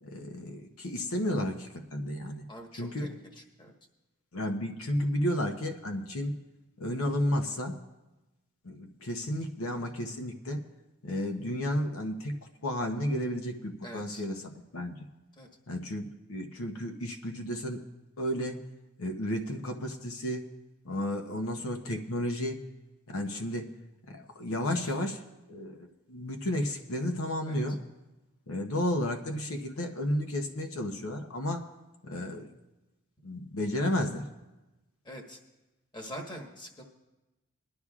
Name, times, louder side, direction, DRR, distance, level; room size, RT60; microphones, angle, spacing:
voice 1, 0.0-2.4 2.7-3.1 4.3-6.4 6.8-7.8 8.6-10.6 11.0-12.4 12.6-15.0 15.7-17.8 18.2-18.6 19.0-20.4 20.8-22.6 23.1-23.7 24.1-25.2 25.5-27.8 28.5-31.7 32.0-32.5 33.2-34.3, left 1 dB, 75° left, 4 dB, 0.9 m, -32 dB
voice 2, 2.5-3.1 3.6-3.7 13.8-14.2 15.4-15.5 24.8-24.9 27.5-27.6 35.0-35.4 35.9-36.8, equal, 20° left, 1 dB, 1.3 m, -43 dB
21.0 x 11.5 x 2.4 m, 1.1 s
head